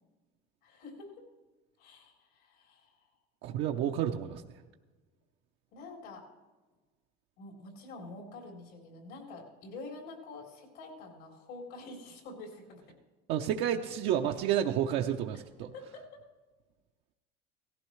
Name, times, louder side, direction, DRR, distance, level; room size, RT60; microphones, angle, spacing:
voice 1, 0.6-1.1 1.8-3.1 5.7-6.2 7.4-13.0 15.7-16.2, left 3 dB, 80° left, 1 dB, 3.8 m, -47 dB
voice 2, 3.4-4.4 13.3-15.7, right 10 dB, 65° right, 2 dB, 0.7 m, -30 dB
17.5 x 15.0 x 3.2 m, 1.3 s
cardioid pair, 140°, 19 cm